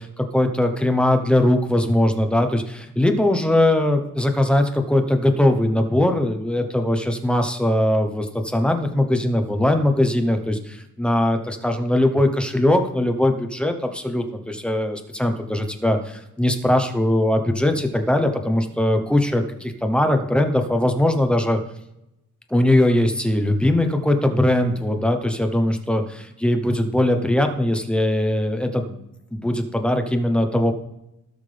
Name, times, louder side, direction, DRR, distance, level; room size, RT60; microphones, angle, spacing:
voice 1, 0.3-21.6 22.5-29.0 29.3-30.7, left 1 dB, 5° left, 5 dB, 0.8 m, -20 dB
17.0 x 5.8 x 3.3 m, 0.86 s
cardioid pair, 165°, 31 cm